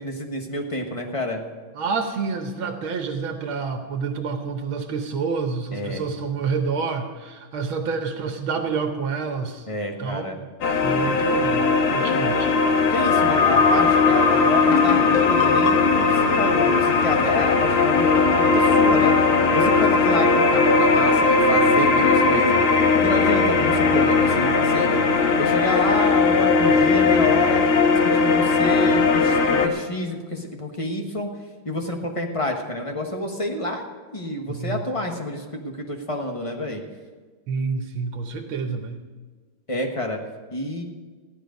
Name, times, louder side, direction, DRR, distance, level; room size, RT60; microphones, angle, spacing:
voice 1, 0.0-1.4 5.7-6.0 9.7-10.4 12.9-19.1 19.5-25.0 25.4-27.6 27.9-31.3 31.6-36.8 39.7-40.2 40.5-40.8, left 1 dB, 20° left, 2 dB, 1.0 m, -28 dB
voice 2, 1.8-9.7 10.0-10.5 10.8-12.5 34.5-34.8 37.5-39.0, right 5 dB, 75° right, 5 dB, 1.7 m, -28 dB
sound 1, 10.6-29.7, left 4 dB, 85° left, 2.1 m, -18 dB
sound 2, 14.7-18.3, left 8 dB, 70° left, 1.0 m, -28 dB
15.5 x 11.0 x 5.2 m, 1.4 s
omnidirectional pair, 2.3 m